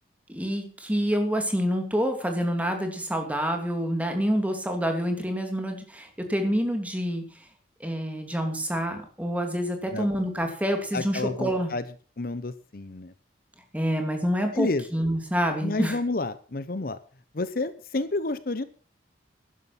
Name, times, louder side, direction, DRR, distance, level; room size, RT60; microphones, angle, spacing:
voice 1, 0.3-7.2 7.8-11.7 13.7-16.0, equal, 10° right, 4 dB, 2.8 m, -27 dB
voice 2, 10.9-11.8 12.2-13.1 14.5-14.9 15.6-17.0 17.3-18.6, left 2 dB, 55° left, 13 dB, 0.8 m, -30 dB
12.5 x 11.0 x 6.0 m, 0.41 s
head